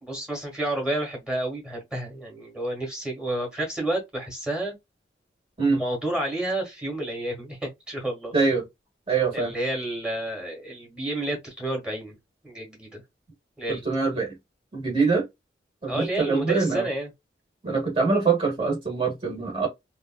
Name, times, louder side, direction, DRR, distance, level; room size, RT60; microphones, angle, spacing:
voice 1, 0.0-4.7 5.7-8.3 9.3-12.1 12.4-13.0 13.6-13.8 15.9-17.1, right 1 dB, 5° right, 1.6 m, -30 dB
voice 2, 8.3-8.6 9.1-9.5 13.7-14.3 14.7-15.2 15.8-16.9 17.6-19.7, right 4 dB, 30° right, 1.6 m, -24 dB
3.4 x 2.5 x 2.2 m
head